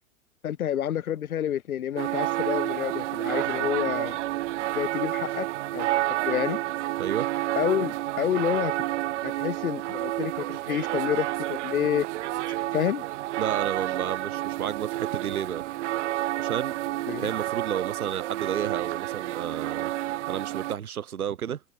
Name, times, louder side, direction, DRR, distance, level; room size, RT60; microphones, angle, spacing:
voice 1, 0.4-4.2 4.7-5.5 5.7-5.9 6.2-6.6 7.6-8.7 9.2-12.1 12.7-13.0 17.1-17.3, left 10 dB, 75° left, 1.6 m, -28 dB
sound 1, 2.0-20.7, right 16 dB, 55° right, 1.0 m, -30 dB
voice 2, 13.4-15.6 16.4-16.8 17.2-21.6, right 9 dB, 75° right, 2.0 m, -32 dB
hypercardioid pair, 115°, 43 cm